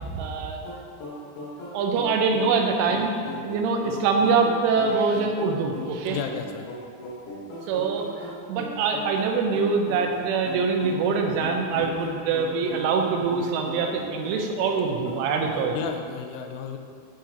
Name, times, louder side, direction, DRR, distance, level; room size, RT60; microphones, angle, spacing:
voice 1, 0.1-0.6 1.7-3.1 3.4-6.2 7.7-8.1 8.5-15.8, right 5 dB, 90° right, 3 dB, 3.2 m, -24 dB
sound 1, 0.7-15.8, left 1 dB, 70° left, 3.5 m, -38 dB
voice 2, 6.1-6.7 15.7-16.8, left 8 dB, 90° left, 4 dB, 2.4 m, -33 dB
10.0 x 3.8 x 4.2 m, 2.2 s
omnidirectional pair, 5.4 m